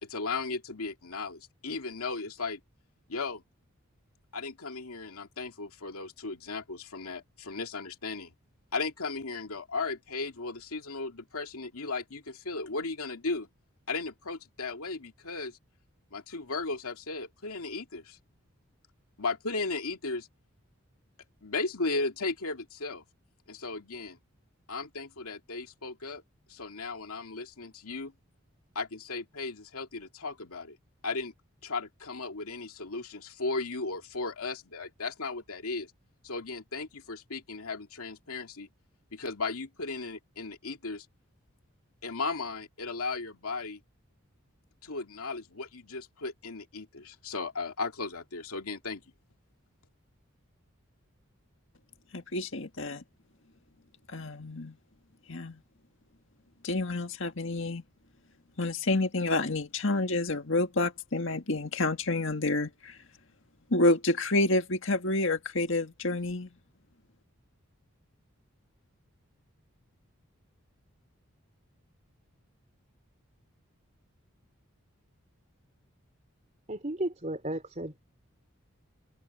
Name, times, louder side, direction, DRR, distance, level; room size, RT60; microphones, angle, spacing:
voice 1, 0.0-2.6 3.1-3.4 4.3-8.3 8.7-13.5 13.9-15.6 16.1-18.2 19.2-20.3 21.4-23.0 23.5-24.2 24.7-26.2 26.5-28.1 28.7-30.8 31.0-31.3 31.6-35.9 36.2-38.7 39.1-41.1 42.0-43.8 44.8-49.0, left 3 dB, 90° left, 2.5 m, -36 dB
voice 2, 52.1-53.0 54.1-54.8 55.3-55.6 56.6-57.8 58.6-63.0 63.7-66.5, left 2 dB, 60° left, 1.8 m, -29 dB
voice 3, 76.7-78.0, right 1 dB, 35° right, 3.1 m, -34 dB
head